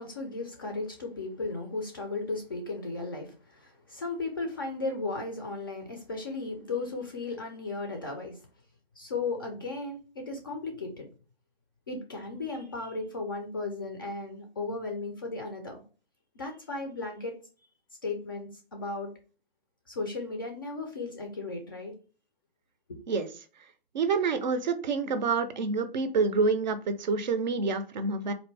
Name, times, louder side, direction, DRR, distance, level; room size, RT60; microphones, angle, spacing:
voice 1, 0.0-8.4 9.0-11.1 11.9-15.8 16.3-17.3 18.0-19.1 19.9-21.9 22.9-23.0, left 3 dB, 20° left, 3 dB, 0.4 m, -35 dB
voice 2, 23.9-28.3, right 4 dB, 45° right, 10 dB, 0.5 m, -27 dB
4.0 x 2.6 x 3.2 m, 0.37 s
hypercardioid pair, 150°, 31 cm